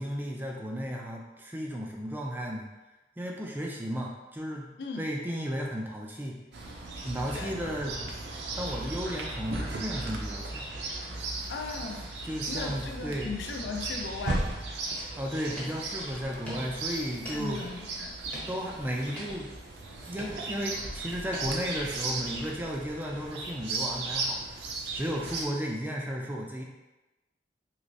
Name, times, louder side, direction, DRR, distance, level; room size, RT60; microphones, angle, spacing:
voice 1, 0.0-2.7 3.2-4.7 5.0-6.4 7.0-8.0 8.5-10.7 12.2-13.3 15.2-17.6 18.5-19.5 20.1-24.6 24.9-26.6, equal, 10° right, -1 dB, 0.3 m, -34 dB
Chirp tweet, 6.5-25.5, right 2 dB, 75° right, 0.5 m, -36 dB
voice 2, 11.5-12.1 12.5-14.6 17.3-18.2, left 4 dB, 75° left, 3 dB, 0.4 m, -37 dB
sound 1, 15.1-15.2 15.5-16.1 16.5-18.0 18.3-19.8 20.2-20.9 21.3-22.2 22.7-22.8, equal, 5° left, 0.7 m, -44 dB
3.2 x 3.0 x 2.6 m, 1.1 s
head